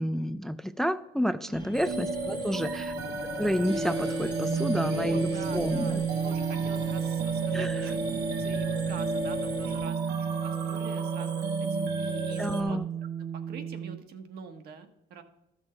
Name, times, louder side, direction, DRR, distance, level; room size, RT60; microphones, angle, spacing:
voice 1, 0.0-2.9 3.4-6.0 7.5-7.9 12.4-12.9, equal, 5° left, 12 dB, 0.3 m, -30 dB
voice 2, 1.4-1.7 2.3-2.7 4.5-12.8 13.2-15.2, right 6 dB, 70° right, 6 dB, 1.3 m, -45 dB
sound 1, 1.5-9.9, left 4 dB, 25° left, 0.7 m, -44 dB
sound 2, 1.7-12.6, right 1 dB, 90° right, 1.0 m, -34 dB
sound 3, 3.7-14.0, right 7 dB, 30° right, 0.8 m, -32 dB
13.0 x 6.3 x 4.3 m, 0.87 s
cardioid pair, 110°, 17 cm